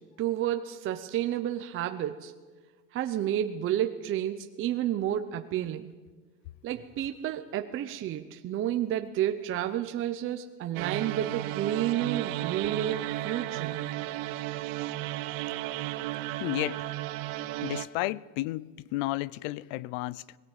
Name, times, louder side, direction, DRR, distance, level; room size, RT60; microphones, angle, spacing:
voice 1, 0.2-2.3 2.9-5.9 6.6-13.8, right 11 dB, 30° right, 0.8 m, -31 dB
sound 1, 10.7-17.8, right 15 dB, 70° right, 1.3 m, -34 dB
voice 2, 16.4-16.9 17.6-20.4, left 18 dB, 70° left, 0.7 m, -32 dB
20.5 x 17.5 x 8.9 m
cardioid pair, 155°, 39 cm